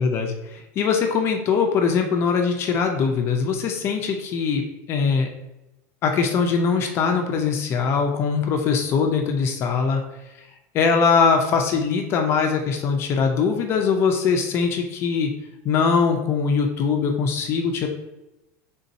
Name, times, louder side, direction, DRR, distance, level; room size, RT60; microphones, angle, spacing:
voice 1, 0.0-5.3 6.0-10.0 10.7-15.3 15.6-17.9, left 5 dB, 30° left, 3 dB, 0.4 m, -22 dB
3.7 x 2.6 x 4.0 m, 0.96 s
supercardioid pair, 160°, 8 cm